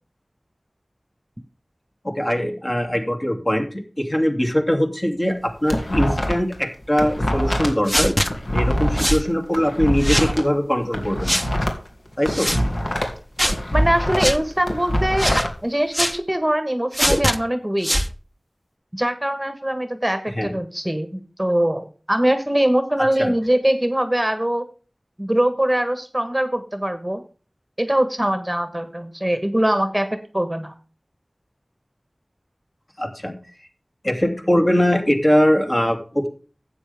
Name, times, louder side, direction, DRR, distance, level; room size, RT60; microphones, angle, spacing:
voice 1, 2.0-8.1 8.5-11.4 12.2-12.5 20.3-20.5 23.2-23.3 33.0-33.3 34.0-36.3, equal, 35° left, 3 dB, 2.7 m, -21 dB
sound 1, 5.3-6.6 6.8-10.4 10.8-13.2 13.5-15.5, equal, 65° left, 2.5 m, -24 dB
sound 2, 7.9-8.3 9.0-9.3 10.0-10.3 11.3-11.5 12.3-12.6 13.4-13.6 14.2-14.4 15.2-15.5 15.9-16.2 16.9-17.4 17.8-18.1, equal, 5° left, 0.9 m, -21 dB
voice 2, 13.7-15.3 15.6-17.9 18.9-24.6 25.2-27.2 27.8-30.1 30.3-30.7, right 1 dB, 15° right, 9 dB, 1.3 m, -22 dB
12.5 x 8.5 x 3.5 m, 0.37 s
wide cardioid pair, 50°, 0 cm